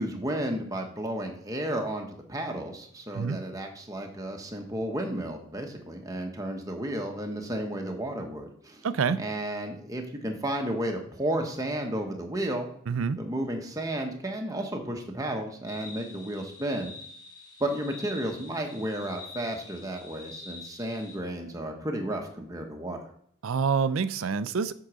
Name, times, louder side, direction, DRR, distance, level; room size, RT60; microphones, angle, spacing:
voice 1, 0.0-8.9 9.2-12.7 13.2-16.9 17.6-23.0, right 1 dB, 15° right, 3 dB, 1.0 m, -32 dB
voice 2, 8.8-9.2 12.9-13.2 23.4-24.7, right 5 dB, 75° right, 15 dB, 0.5 m, -27 dB
sound 1, 15.7-21.2, left 3 dB, 20° left, 2.7 m, -46 dB
8.1 x 3.8 x 6.1 m, 0.64 s
head